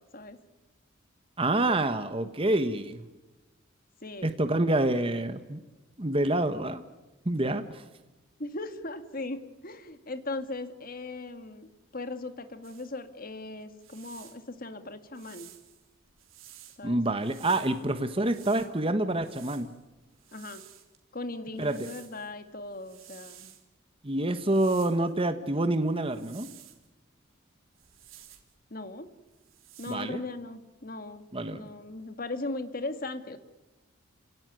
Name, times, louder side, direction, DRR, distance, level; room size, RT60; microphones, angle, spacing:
voice 1, 1.4-3.0 4.2-5.6 6.0-6.8 7.2-7.8 16.8-19.7 21.6-21.9 24.0-26.5 29.9-30.2 31.3-31.7, right 1 dB, 25° right, 9 dB, 1.3 m, -27 dB
voice 2, 4.0-4.3 8.4-15.5 16.8-17.0 20.3-20.7 21.1-23.5 28.7-29.1 29.8-31.3 31.5-33.4, left 2 dB, 45° left, 9 dB, 1.9 m, -38 dB
sound 1, 12.6-12.9 13.6-14.4 15.1-16.8 17.2-18.7 19.1-21.0 21.6-22.3 22.6-23.6 24.3-25.1 26.0-26.9 27.7-28.5 29.3-30.0, right 11 dB, 80° right, 3.5 m, -52 dB
30.0 x 18.0 x 9.5 m, 1.1 s
head